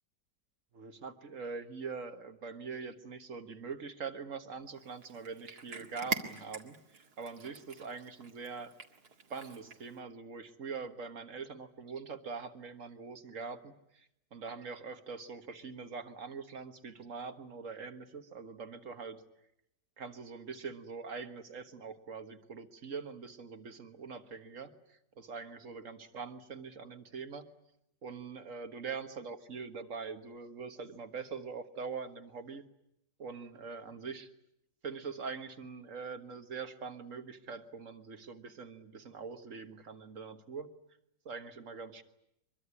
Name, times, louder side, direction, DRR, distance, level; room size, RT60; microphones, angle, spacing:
voice 1, 0.7-8.7 9.3-19.2 20.0-27.5 28.0-32.6 33.2-34.3 34.8-40.7 41.3-42.0, right 5 dB, 45° right, 9 dB, 1.8 m, -43 dB
Cat, 4.8-10.0, right 6 dB, 65° right, 2.4 m, -43 dB
24.0 x 23.0 x 9.8 m, 0.79 s
omnidirectional pair, 1.9 m